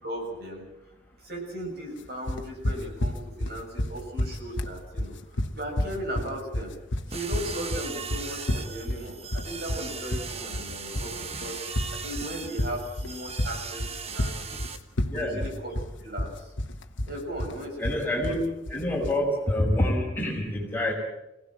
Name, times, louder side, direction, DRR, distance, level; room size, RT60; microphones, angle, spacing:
voice 1, 0.0-0.6 1.2-5.1 5.5-6.7 7.1-11.6 11.9-14.6 15.1-15.7 16.0-16.3 17.1-18.0, equal, 55° right, 1 dB, 7.0 m, -37 dB
sound 1, 2.3-19.2, left 1 dB, 85° left, 1.4 m, -31 dB
sound 2, 7.1-14.8, right 5 dB, 35° right, 1.3 m, -38 dB
voice 2, 15.1-15.4 17.8-20.9, left 1 dB, 10° left, -1 dB, 5.1 m, -27 dB
26.5 x 18.0 x 7.6 m, 0.93 s
head